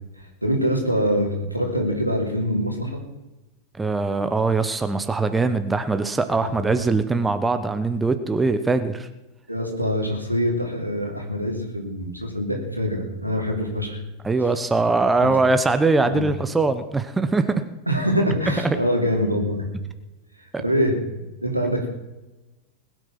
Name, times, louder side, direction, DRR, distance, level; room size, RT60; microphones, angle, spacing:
voice 1, 0.2-3.0 6.4-6.7 9.5-14.0 14.4-14.5 15.2-15.3 16.0-16.3 17.9-19.7 20.6-21.9, equal, 90° right, 1 dB, 3.0 m, -24 dB
voice 2, 3.8-9.1 14.2-17.6 20.5-20.6, right 3 dB, 10° right, 9 dB, 1.0 m, -22 dB
20.5 x 9.2 x 6.0 m, 1.1 s
figure-of-eight pair, 90°, 0 cm